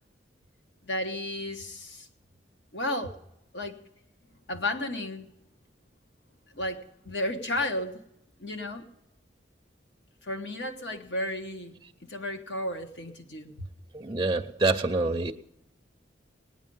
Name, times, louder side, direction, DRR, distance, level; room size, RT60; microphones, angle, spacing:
voice 1, 0.8-2.1 2.7-3.2 3.5-3.8 4.5-5.3 6.5-8.0 8.4-8.9 10.2-11.8 12.1-13.5, left 1 dB, 70° left, 5 dB, 1.3 m, -33 dB
voice 2, 13.9-15.3, right 3 dB, 20° right, 4 dB, 0.5 m, -26 dB
18.5 x 9.8 x 5.4 m, 0.87 s
head